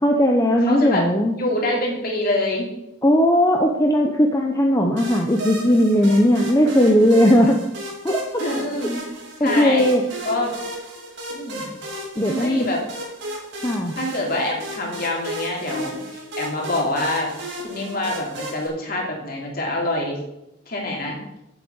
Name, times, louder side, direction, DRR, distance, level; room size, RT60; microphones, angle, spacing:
voice 1, 0.0-1.3 3.0-7.6 8.0-8.2 9.4-10.0 12.2-12.7 13.6-13.9, equal, 15° left, 1 dB, 0.8 m, -17 dB
voice 2, 0.6-1.0 1.4-2.7 8.4-9.1 9.4-9.9 10.2-10.5 11.3-11.7 12.4-12.8 14.0-17.3 17.6-20.2 20.7-21.2, left 1 dB, 45° left, -1 dB, 2.9 m, -25 dB
sound 1, 5.0-18.7, right 1 dB, 60° right, 3.1 m, -34 dB
8.2 x 6.6 x 8.1 m, 0.89 s
head